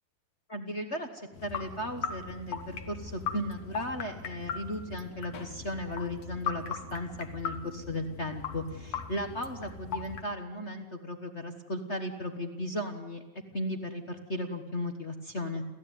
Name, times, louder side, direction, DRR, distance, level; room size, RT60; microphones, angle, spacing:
voice 1, 0.5-13.2 13.5-15.6, left 1 dB, 45° left, 5 dB, 0.9 m, -36 dB
sound 1, 1.3-10.2, left 6 dB, 60° left, 2.4 m, -39 dB
28.5 x 14.5 x 9.3 m, 1.1 s
omnidirectional pair, 3.3 m